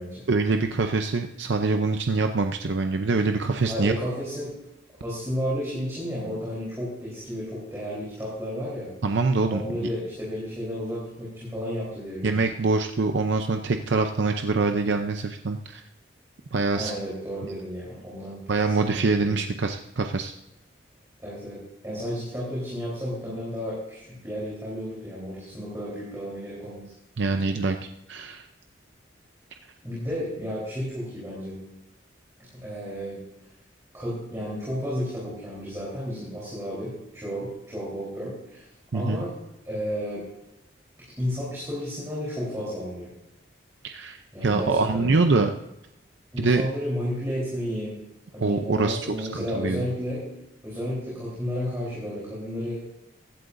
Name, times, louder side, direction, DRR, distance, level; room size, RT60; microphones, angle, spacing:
voice 1, 0.3-3.9 9.0-9.6 12.2-15.8 16.5-16.9 18.5-20.3 27.2-28.5 38.9-39.2 43.8-45.5 46.4-46.6 48.4-49.8, right 3 dB, 70° right, 6 dB, 0.6 m, -24 dB
voice 2, 3.6-4.5 5.0-8.9 9.5-12.4 16.8-19.5 21.2-26.8 29.8-31.6 32.5-33.2 33.9-38.6 38.9-39.3 39.6-40.3 41.2-43.1 44.3-45.1 46.3-47.9 48.3-50.2 50.6-52.8, equal, 15° right, -7 dB, 3.8 m, -32 dB
16.0 x 11.5 x 2.6 m, 0.89 s
head